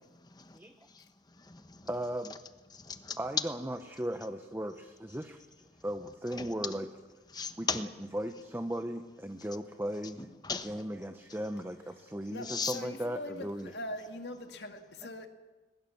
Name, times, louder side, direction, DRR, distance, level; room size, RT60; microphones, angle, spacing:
voice 1, 0.1-1.9 2.3-2.4 2.7-3.5 5.1-6.8 7.3-8.1 9.4-9.6 10.0-11.0 11.3-11.5 12.2-12.8, left 5 dB, 20° left, 9 dB, 1.1 m, -40 dB
voice 2, 1.8-2.3 3.2-5.4 5.8-6.8 7.6-7.7 8.1-10.2 10.7-13.7, right 1 dB, 10° right, 7 dB, 0.8 m, -37 dB
voice 3, 12.3-15.3, left 1 dB, 70° left, 6 dB, 2.1 m, -42 dB
21.5 x 21.5 x 7.2 m, 1.2 s
head